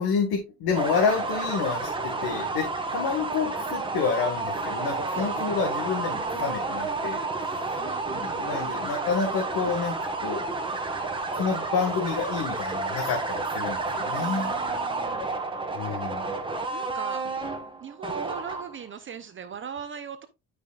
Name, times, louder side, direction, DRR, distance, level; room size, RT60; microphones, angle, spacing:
voice 1, 0.0-7.8 8.1-10.5 11.3-14.5 15.7-16.3, left 5 dB, 60° left, 2 dB, 1.8 m, -29 dB
sound 1, 0.7-18.9, right 3 dB, 10° right, 1.3 m, -30 dB
voice 2, 5.1-5.5 7.8-8.4 14.1-15.3 16.7-17.2 17.8-20.3, right 7 dB, 30° right, 10 dB, 0.6 m, -39 dB
11.0 x 5.2 x 2.4 m, 0.25 s
cardioid pair, 125°, 43 cm